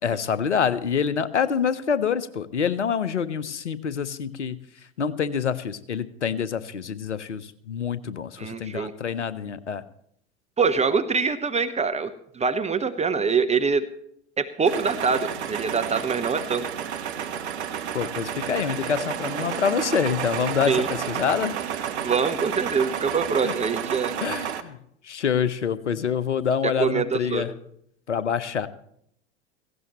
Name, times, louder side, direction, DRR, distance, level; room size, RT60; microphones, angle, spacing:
voice 1, 0.0-4.6 5.0-9.8 17.9-21.9 23.4-23.5 24.2-24.8 25.0-27.5 28.1-28.7, left 7 dB, 85° left, 16 dB, 0.9 m, -26 dB
voice 2, 8.4-8.9 10.6-13.9 14.4-16.7 20.7-20.9 22.0-24.1 26.6-27.5, right 5 dB, 20° right, 10 dB, 0.9 m, -24 dB
sound 1, 14.6-24.6, right 8 dB, 75° right, 1.2 m, -31 dB
17.5 x 16.0 x 3.1 m, 0.70 s
hypercardioid pair, 80°, 34 cm